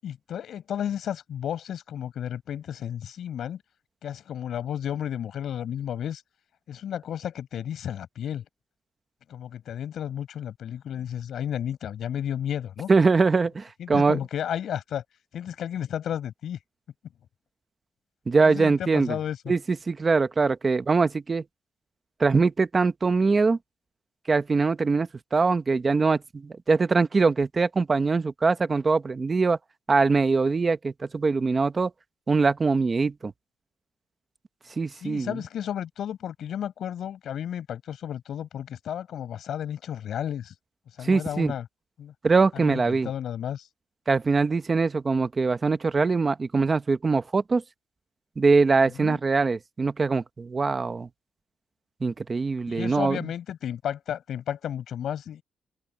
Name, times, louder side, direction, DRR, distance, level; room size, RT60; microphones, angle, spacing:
voice 1, 0.0-3.6 4.0-6.2 6.7-8.4 9.3-12.9 13.8-15.0 15.3-16.6 18.4-19.5 35.0-40.5 41.0-41.7 42.0-42.1 42.5-43.7 49.0-49.2 52.7-55.4, left 9 dB, 65° left, 7.2 m, -33 dB
voice 2, 12.9-14.2 18.3-19.2 19.5-21.4 22.2-23.6 24.3-29.6 29.9-31.9 32.3-33.3 34.8-35.4 41.0-41.5 42.2-43.1 44.1-47.6 48.4-51.1 52.0-53.2, right 4 dB, 25° right, 0.9 m, -23 dB
open air
wide cardioid pair, 175°, 0 cm